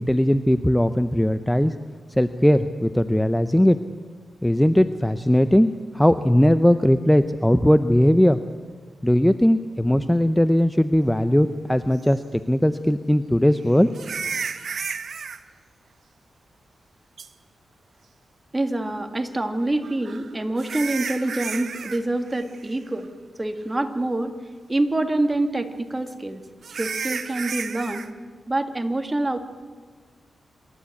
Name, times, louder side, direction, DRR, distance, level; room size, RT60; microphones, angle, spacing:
voice 1, 0.0-1.7 2.2-3.8 4.4-8.4 9.0-13.9, equal, 5° left, 11 dB, 0.7 m, -19 dB
sound 1, 12.1-12.2 13.9-15.4 17.2-17.3 19.8-22.0 22.3-22.6 23.0-23.1 23.7-23.8 26.6-28.1, right 6 dB, 65° right, 1.1 m, -32 dB
voice 2, 18.5-23.1 23.4-24.3 24.7-26.4 26.8-28.1 28.5-29.4, right 2 dB, 20° right, 7 dB, 1.8 m, -26 dB
27.0 x 13.0 x 8.5 m, 1.5 s
cardioid pair, 80°, 0 cm